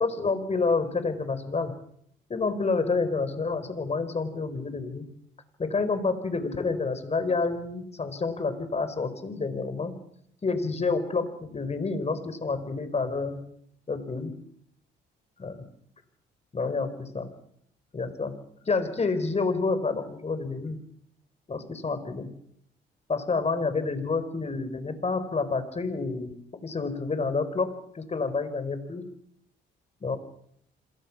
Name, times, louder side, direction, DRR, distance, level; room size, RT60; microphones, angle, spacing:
voice 1, 0.0-1.7 2.3-5.0 5.6-9.9 10.4-13.4 13.9-14.3 15.4-15.6 16.5-17.3 17.9-18.3 18.6-20.8 21.5-22.3 23.1-26.3 26.6-29.0 30.0-30.2, left 4 dB, 35° left, 10 dB, 4.7 m, -28 dB
27.0 x 23.0 x 6.2 m, 0.69 s
cardioid pair, 90°, 20 cm